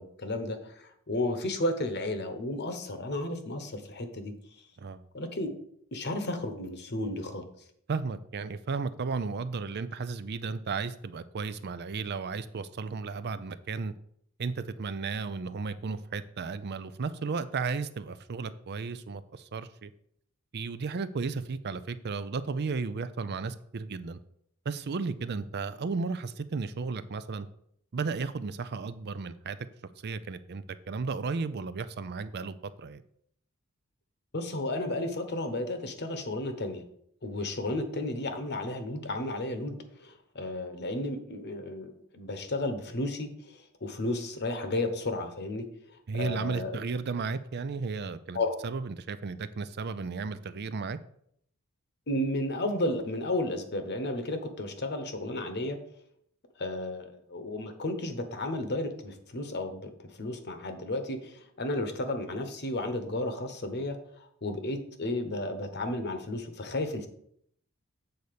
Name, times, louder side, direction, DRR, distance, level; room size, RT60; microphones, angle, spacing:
voice 1, 0.0-4.3 5.1-5.6 5.9-7.4 34.3-36.8 37.2-45.7 46.1-46.8 48.3-48.6 52.1-55.8 56.6-59.9 60.2-64.0 64.4-67.1, left 1 dB, 50° left, 8 dB, 1.0 m, -33 dB
voice 2, 7.9-13.9 14.4-19.9 20.5-24.2 24.7-27.5 27.9-29.6 30.0-33.0 46.1-48.4 48.6-51.0, right 4 dB, 50° right, 13 dB, 0.5 m, -34 dB
7.9 x 4.1 x 6.7 m, 0.69 s
head